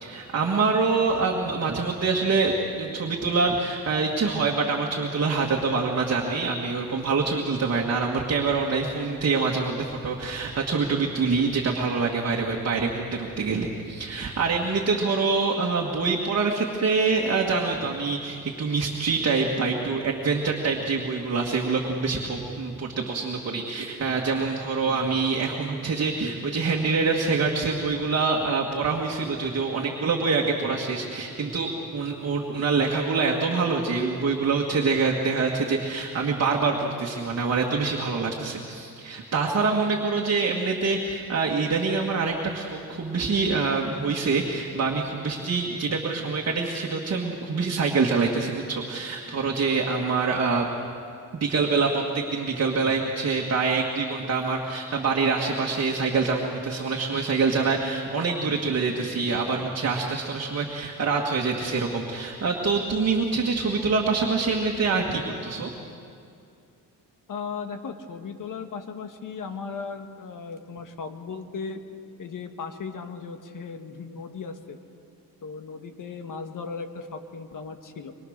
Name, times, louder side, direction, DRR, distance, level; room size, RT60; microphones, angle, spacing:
voice 1, 0.0-50.7 51.3-65.7, right 4 dB, 40° right, -1 dB, 1.9 m, -25 dB
voice 2, 67.3-71.8 72.2-74.8 75.4-78.2, left 5 dB, 55° left, 7 dB, 1.7 m, -36 dB
23.5 x 23.0 x 6.6 m, 2.5 s
cardioid pair, 130°, 37 cm